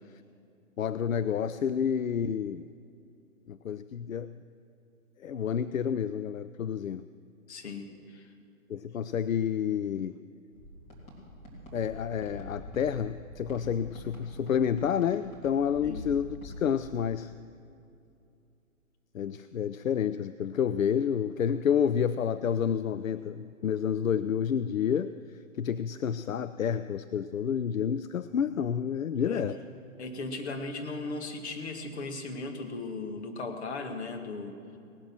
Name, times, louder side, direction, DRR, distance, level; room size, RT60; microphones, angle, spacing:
voice 1, 0.8-2.6 3.5-4.3 5.2-7.0 8.7-10.2 11.7-17.3 19.1-25.1 25.6-29.6, left 8 dB, 75° left, 13 dB, 0.5 m, -29 dB
voice 2, 7.5-8.3 15.8-16.0 29.2-29.4 30.0-34.6, left 3 dB, 50° left, 4 dB, 2.0 m, -37 dB
sound 1, 10.5-16.6, equal, 15° left, 3.0 m, -45 dB
18.0 x 12.0 x 6.2 m, 2.6 s
figure-of-eight pair, 130°, 41 cm